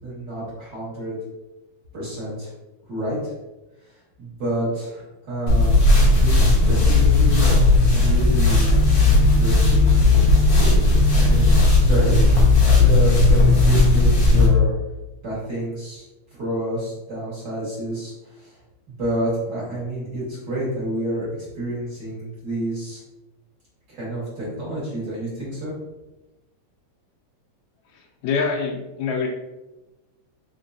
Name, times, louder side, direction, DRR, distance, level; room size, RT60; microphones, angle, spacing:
voice 1, 0.0-1.2 1.9-2.5 2.9-3.3 3.9-5.9 6.2-7.5 7.9-8.7 9.2-10.0 10.4-12.2 12.8-14.7 15.2-16.0 16.3-18.6 19.0-23.0 23.9-25.8, right 1 dB, 45° right, -8 dB, 1.7 m, -29 dB
sound 1, 5.5-14.5, left 2 dB, 60° left, 1.0 m, -15 dB
voice 2, 28.0-29.3, left 5 dB, 80° left, 2 dB, 1.8 m, -25 dB
4.8 x 3.7 x 2.6 m, 1.0 s
omnidirectional pair, 3.4 m